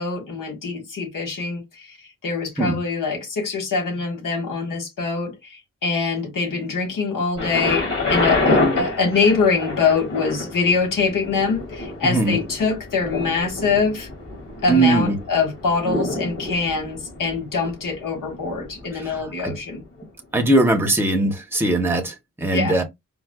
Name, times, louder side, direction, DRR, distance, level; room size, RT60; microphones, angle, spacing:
voice 1, 0.0-14.1 14.6-19.8 22.5-22.8, left 4 dB, 85° left, 1.4 m, -24 dB
Thunder, 7.4-19.2 20.0-20.1, left 2 dB, 40° left, 2.2 m, -27 dB
voice 2, 12.0-12.4 14.7-15.2 19.4-19.5 20.3-22.8, right 2 dB, 5° right, 0.7 m, -20 dB
4.5 x 2.0 x 2.2 m
wide cardioid pair, 110°, 32 cm